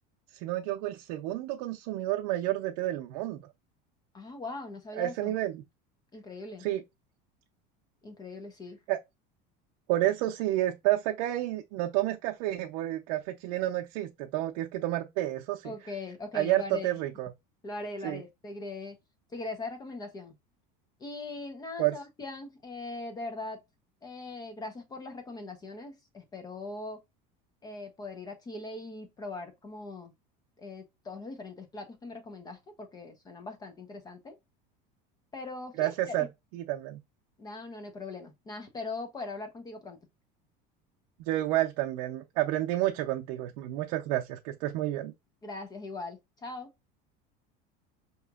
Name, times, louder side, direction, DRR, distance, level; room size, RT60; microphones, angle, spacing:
voice 1, 0.3-3.5 5.0-5.6 6.6-6.8 8.9-9.0 9.9-15.7 16.3-17.3 18.0-18.2 21.8-22.0 35.8-36.3 36.5-37.0 41.3-45.1, right 15 dB, 70° right, 0.5 m, -30 dB
voice 2, 4.1-5.3 6.1-6.7 8.0-8.8 15.6-17.0 17.6-19.0 19.3-20.3 21.0-23.6 24.0-27.0 27.6-30.1 30.6-34.4 35.3-36.3 37.4-40.0 45.4-46.7, left 3 dB, 20° left, 0.6 m, -40 dB
5.5 x 2.9 x 2.3 m
cardioid pair, 155°, 21 cm